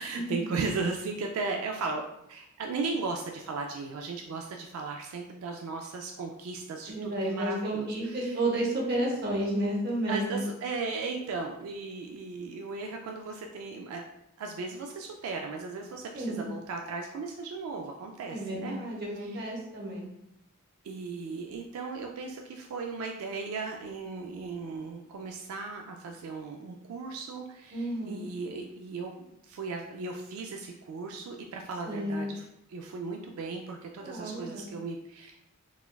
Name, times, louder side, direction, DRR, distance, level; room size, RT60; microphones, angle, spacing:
voice 1, 0.0-2.0 2.3-8.4 10.1-14.0 14.4-18.8 19.2-19.4 20.8-29.1 29.4-35.4, right 4 dB, 85° right, 2 dB, 0.3 m, -36 dB
voice 2, 6.9-10.4 16.1-16.4 18.3-20.1 27.7-28.3 31.8-32.3 34.0-34.7, right 1 dB, 45° right, -2 dB, 0.8 m, -31 dB
4.0 x 2.3 x 2.2 m, 0.83 s
head